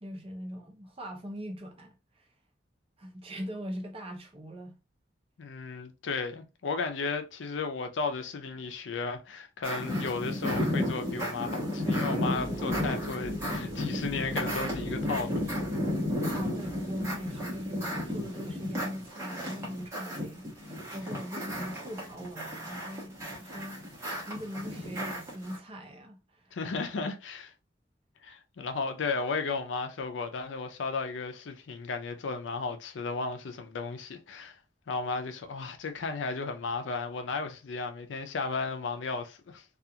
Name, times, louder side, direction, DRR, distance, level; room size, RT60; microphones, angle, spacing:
voice 1, 0.0-2.3 3.0-4.8 16.3-23.8 24.3-26.6, equal, 30° right, 0.6 m, -41 dB
voice 2, 5.4-15.6 26.5-27.5 28.2-34.6 34.9-39.6, left 4 dB, 85° left, 0.5 m, -34 dB
sound 1, 9.6-25.6, left 1 dB, 15° right, 1.0 m, -33 dB
sound 2, 12.3-18.4, right 2 dB, 20° left, 0.8 m, -45 dB
2.4 x 2.4 x 2.8 m
head